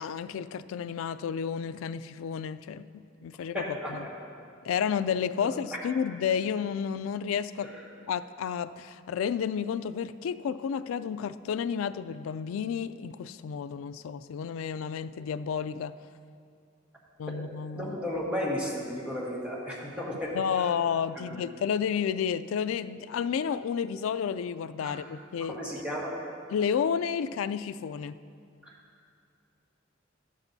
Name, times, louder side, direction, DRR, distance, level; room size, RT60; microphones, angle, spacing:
voice 1, 0.0-4.1 4.6-7.7 8.1-15.9 17.2-18.0 20.3-25.6 26.5-28.2, left 7 dB, 85° left, 13 dB, 0.3 m, -31 dB
voice 2, 3.5-4.1 5.4-5.5 7.6-7.7 17.8-20.7 21.2-21.4 24.8-25.0 25.5-26.1 28.6-28.8, equal, 5° right, -6 dB, 1.7 m, -34 dB
12.5 x 11.5 x 2.7 m, 2.4 s
head